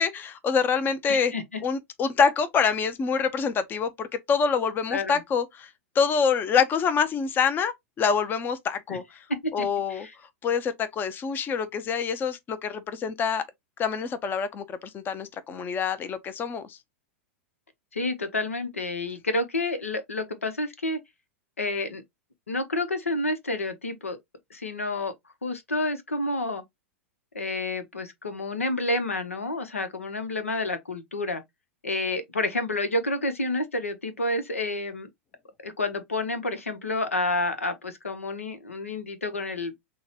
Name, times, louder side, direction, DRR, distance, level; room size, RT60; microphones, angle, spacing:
voice 1, 0.0-1.3 1.6-5.7 5.9-9.0 9.5-10.1 10.4-13.4 13.8-16.8, left 6 dB, 30° left, 0.7 m, -26 dB
voice 2, 1.1-1.6 4.9-5.2 8.9-9.0 9.6-10.1 17.9-21.0 21.6-22.0 22.5-24.2 24.5-25.1 25.4-26.6 27.3-31.4 31.8-35.1 35.6-39.7, left 2 dB, 90° left, 0.9 m, -29 dB
6.3 x 2.3 x 2.9 m
hypercardioid pair, 100°, 7 cm